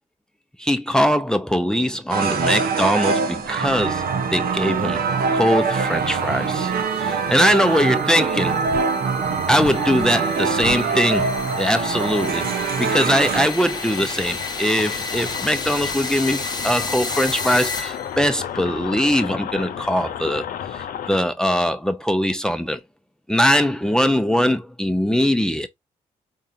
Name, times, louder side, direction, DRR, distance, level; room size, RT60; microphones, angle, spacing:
voice 1, 0.6-5.0 5.3-8.7 9.5-22.8 23.3-25.7, equal, 5° left, 0.7 m, -21 dB
sound 1, 2.1-13.5, right 5 dB, 70° right, 0.9 m, -23 dB
sound 2, 3.5-18.3, left 3 dB, 25° left, 1.0 m, -33 dB
sound 3, 8.5-21.2, left 9 dB, 65° left, 0.6 m, -34 dB
4.6 x 3.7 x 2.7 m
supercardioid pair, 50°, 16 cm